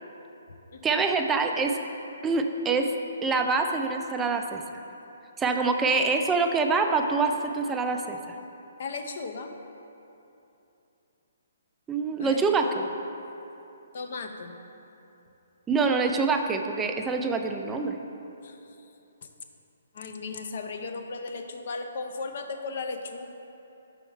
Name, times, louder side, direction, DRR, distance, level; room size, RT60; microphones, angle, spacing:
voice 1, 0.8-1.8 2.2-2.9 3.2-4.6 5.4-8.2 11.9-12.9 15.7-18.0, right 4 dB, 10° right, 4 dB, 0.3 m, -25 dB
voice 2, 8.8-9.5 12.2-12.9 13.9-14.6 18.4-18.6 19.9-23.3, left 4 dB, 55° left, 5 dB, 0.5 m, -36 dB
5.6 x 4.4 x 5.4 m, 2.9 s
hypercardioid pair, 155°, 0 cm